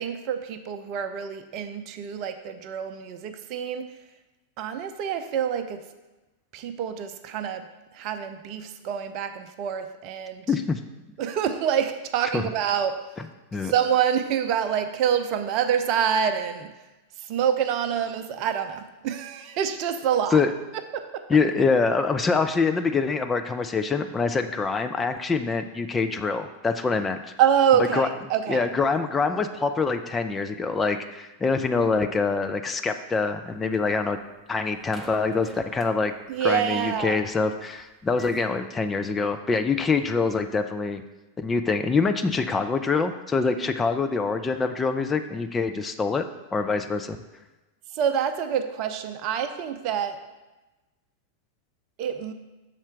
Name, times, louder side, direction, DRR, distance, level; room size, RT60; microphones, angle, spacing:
voice 1, 0.0-3.9 4.6-5.8 6.5-7.7 7.9-10.5 11.2-13.0 13.6-16.7 17.2-20.4 20.9-21.2 27.4-28.7 36.3-37.2 47.9-50.2 52.0-52.3, right 8 dB, 40° right, 8 dB, 0.6 m, -26 dB
voice 2, 10.5-10.8 12.3-12.4 13.5-13.7 20.3-20.5 21.3-27.2 27.9-28.1 28.5-34.2 34.5-36.1 36.4-41.0 41.4-46.3 46.5-47.2, left 4 dB, 15° left, 7 dB, 0.4 m, -25 dB
sound 1, 33.5-34.4 34.7-38.5, right 1 dB, 5° right, 0.8 m, -45 dB
6.6 x 4.3 x 5.9 m, 1.1 s
figure-of-eight pair, 90°, 0 cm